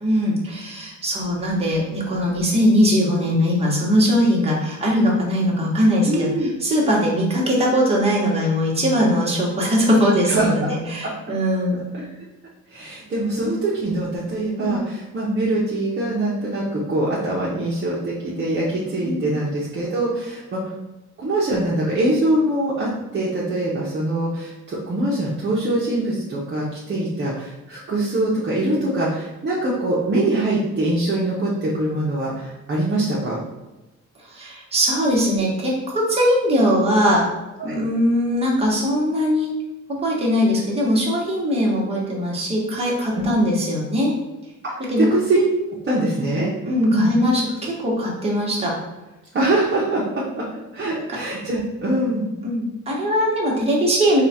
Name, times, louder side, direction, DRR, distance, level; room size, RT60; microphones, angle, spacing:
voice 1, 0.0-12.1 14.6-14.8 19.0-19.2 34.3-37.3 37.6-39.5 39.9-44.1 44.9-45.1 46.1-46.2 46.7-48.8 51.1-51.2 52.4-54.2, equal, 20° right, -4 dB, 1.2 m, -20 dB
voice 2, 6.1-6.5 10.3-10.5 12.7-20.7 21.2-33.4 37.6-37.7 43.2-43.4 44.6-45.4 45.8-46.5 46.9-47.1 49.3-50.4 50.7-52.3, right 1 dB, 35° right, -7 dB, 0.8 m, -23 dB
4.7 x 2.3 x 4.2 m, 1.1 s
cardioid pair, 155°, 31 cm